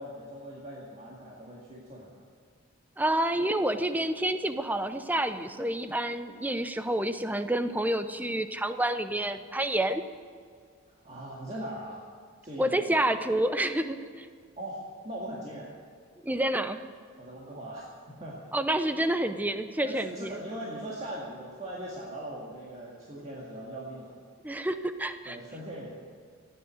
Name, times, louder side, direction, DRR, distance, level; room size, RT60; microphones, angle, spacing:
voice 1, 0.0-2.2 10.9-12.0 12.4-13.0 14.6-15.7 17.2-18.4 19.8-24.2 25.2-25.9, right 1 dB, 30° right, -5 dB, 2.0 m, -40 dB
voice 2, 3.0-10.0 12.6-14.3 16.2-16.8 18.5-20.4 24.4-25.4, right 1 dB, 10° right, 10 dB, 0.6 m, -28 dB
14.5 x 9.6 x 9.4 m, 2.1 s
head